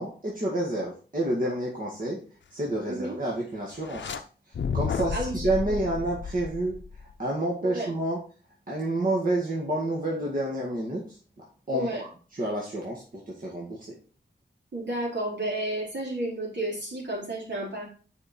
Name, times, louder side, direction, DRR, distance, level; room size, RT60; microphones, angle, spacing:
voice 1, 0.0-2.2 2.5-4.2 4.7-6.8 7.2-8.2 8.7-13.9, right 1 dB, 50° right, -3 dB, 2.0 m, -29 dB
sound 1, 3.8-4.2 4.5-7.1, left 6 dB, 85° left, 0.6 m, -32 dB
voice 2, 11.7-12.0 14.7-17.8, right 1 dB, 75° right, -4 dB, 4.2 m, -31 dB
6.8 x 5.4 x 4.3 m, 0.39 s
wide cardioid pair, 65°, 18 cm